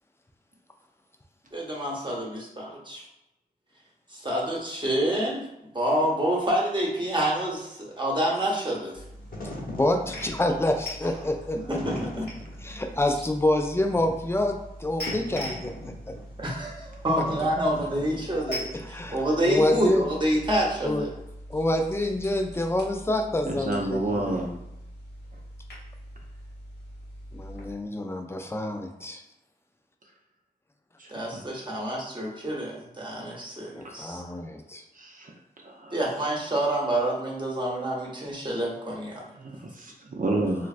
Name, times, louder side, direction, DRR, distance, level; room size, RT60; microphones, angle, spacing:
voice 1, 1.5-3.0 4.1-5.5 5.7-9.0 11.7-12.3 16.4-18.7 19.1-21.1 31.1-34.2 35.9-39.2, right 1 dB, 30° right, -3 dB, 0.9 m, -27 dB
sound 1, 8.9-27.7, equal, 85° left, 0.9 m, -42 dB
Wind / Fire, 9.1-18.6, left 1 dB, 60° left, 0.9 m, -41 dB
voice 2, 9.7-12.2 12.6-16.2 17.2-17.3 18.5-20.1 20.8-21.1 21.5-24.4 27.3-29.2 33.7-34.8, left 1 dB, 15° left, 4 dB, 0.4 m, -27 dB
voice 3, 23.5-24.5 31.0-31.8 34.9-35.3 35.6-35.9 39.4-40.7, right 2 dB, 55° right, 0 dB, 0.6 m, -30 dB
3.1 x 2.2 x 2.4 m, 0.87 s
cardioid pair, 45°, 17 cm